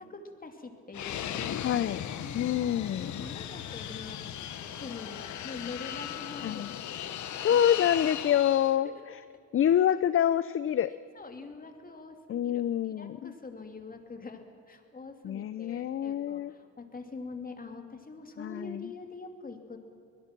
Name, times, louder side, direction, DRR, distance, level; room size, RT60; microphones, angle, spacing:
voice 1, 0.0-1.6 2.2-7.2 7.5-7.8 11.1-19.8, left 3 dB, 30° left, 5 dB, 2.7 m, -45 dB
Fixed-wing aircraft airplane, 0.9-8.8, left 10 dB, 70° left, 1.2 m, -37 dB
voice 2, 1.6-2.0 2.3-3.2 6.4-6.8 7.4-9.2 9.5-10.9 12.3-13.3 15.2-16.5 18.4-18.9, left 10 dB, 45° left, 15 dB, 0.6 m, -27 dB
23.5 x 20.5 x 6.1 m, 2.4 s
cardioid pair, 90°, 30 cm